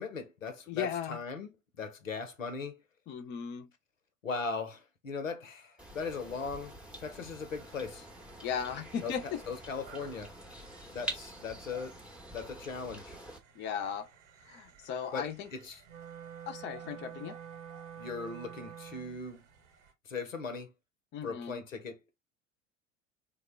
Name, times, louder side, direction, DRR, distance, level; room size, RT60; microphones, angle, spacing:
voice 1, 0.0-2.8 4.2-8.1 9.0-9.2 9.5-10.3 10.9-12.0 12.3-13.2 15.1-15.8 18.0-19.4 20.0-20.7 21.2-22.0, left 4 dB, 85° left, 0.7 m, -39 dB
voice 2, 0.7-1.2 3.1-3.7 8.4-9.4 13.6-14.1 14.5-15.5 16.5-17.4 21.1-21.6, left 7 dB, 30° left, 0.5 m, -36 dB
sound 1, 5.8-13.4, right 1 dB, 5° right, 0.7 m, -46 dB
sound 2, 7.5-19.9, right 5 dB, 65° right, 0.9 m, -59 dB
Wind instrument woodwind instrument, 15.8-19.2, right 9 dB, 85° right, 1.1 m, -47 dB
3.5 x 2.1 x 3.2 m
figure-of-eight pair, 75°, 38 cm